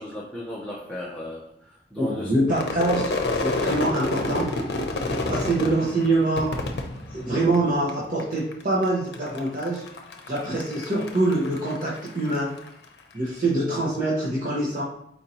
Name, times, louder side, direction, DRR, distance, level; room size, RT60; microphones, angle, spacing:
voice 1, 0.0-2.3 5.1-5.3, left 1 dB, 5° left, -5 dB, 0.6 m, -36 dB
voice 2, 2.0-3.1 3.4-4.5 5.3-6.5 7.1-9.8 10.3-12.6 13.1-14.8, right 2 dB, 45° right, -7 dB, 0.9 m, -24 dB
Crowd / Fireworks, 2.5-7.9 8.2-8.8 9.1-12.7, left 2 dB, 70° left, 0.6 m, -29 dB
4.4 x 2.7 x 4.2 m, 0.72 s
head